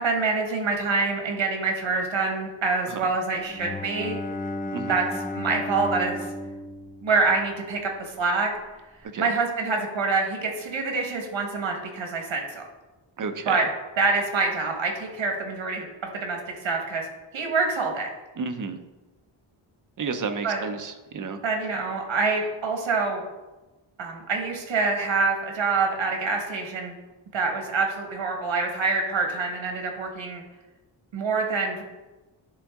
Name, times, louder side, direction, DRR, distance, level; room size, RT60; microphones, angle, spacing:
voice 1, 0.0-4.2 4.9-5.1 5.3-6.2 7.0-8.5 9.2-12.6 13.5-13.6 14.0-15.9 16.1-17.1 17.3-18.1 20.4-20.6 21.4-23.2 24.0-26.9 27.3-30.4 31.1-31.8, right 4 dB, 80° right, 2 dB, 1.5 m, -26 dB
Bowed string instrument, 3.5-8.0, left 2 dB, 20° left, 0.5 m, -34 dB
voice 2, 13.2-13.6 18.4-18.8 20.0-21.4, right 5 dB, 45° right, 7 dB, 0.6 m, -31 dB
11.0 x 3.6 x 3.6 m, 1.1 s
wide cardioid pair, 170°, 46 cm